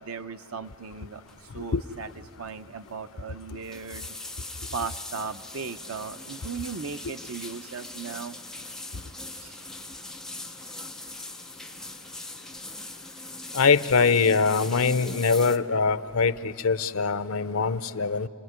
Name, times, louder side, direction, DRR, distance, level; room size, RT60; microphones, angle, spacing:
voice 1, 0.0-2.1 2.4-4.2 4.7-8.4 9.4-9.6, right 5 dB, 85° right, 9 dB, 0.7 m, -37 dB
sound 1, 1.3-1.5 1.8-2.1 2.4-2.5 3.4-15.6, left 2 dB, 5° left, 0.6 m, -41 dB
voice 2, 13.5-18.3, left 5 dB, 85° left, 14 dB, 0.7 m, -23 dB
30.0 x 20.0 x 9.6 m, 2.7 s
head